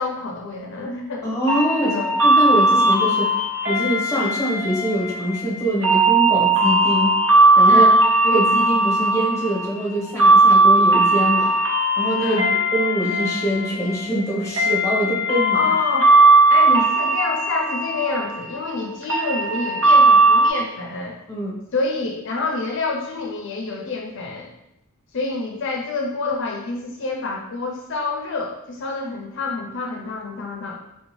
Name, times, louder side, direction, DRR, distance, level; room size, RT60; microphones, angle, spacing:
voice 1, 0.0-1.3 1.8-2.2 7.7-8.0 12.2-12.5 15.5-16.1 16.5-21.2 21.7-24.5 25.1-30.8, left 3 dB, 60° left, 0 dB, 0.4 m, -27 dB
voice 2, 1.2-1.9 2.2-3.3 3.6-7.2 7.6-7.9 8.2-11.5 12.0-12.5 12.7-15.7 21.3-21.6, right 1 dB, 15° left, -4 dB, 0.8 m, -24 dB
sound 1, 1.5-20.5, right 2 dB, 65° right, 0.6 m, -18 dB
3.4 x 2.6 x 3.0 m, 0.84 s
head